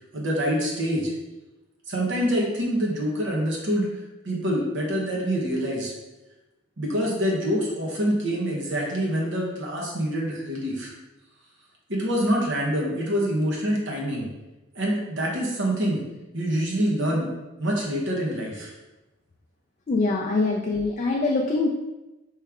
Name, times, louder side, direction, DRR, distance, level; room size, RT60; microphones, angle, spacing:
voice 1, 0.1-1.1 1.9-3.9 4.2-5.9 6.8-10.9 11.9-14.3 14.7-16.0 16.3-17.3 17.6-18.7, equal, 60° right, -2 dB, 1.0 m, -26 dB
voice 2, 19.9-21.7, left 3 dB, 35° left, 0 dB, 0.4 m, -23 dB
4.7 x 3.2 x 3.5 m, 1.1 s
head